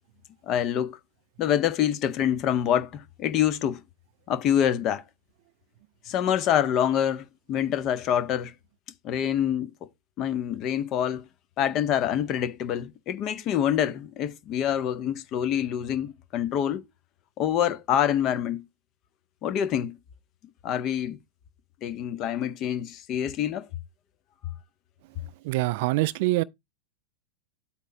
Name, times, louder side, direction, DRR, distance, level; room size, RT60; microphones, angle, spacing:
voice 1, 0.5-1.0 1.4-3.8 4.3-5.0 6.1-8.5 9.0-9.7 10.2-11.2 11.6-16.8 17.4-18.6 19.4-20.0 20.6-21.2 21.8-23.7, left 10 dB, 35° left, 0.6 m, -26 dB
voice 2, 25.4-26.4, right 20 dB, 50° right, 0.3 m, -24 dB
8.1 x 2.9 x 5.3 m
figure-of-eight pair, 90°, 0 cm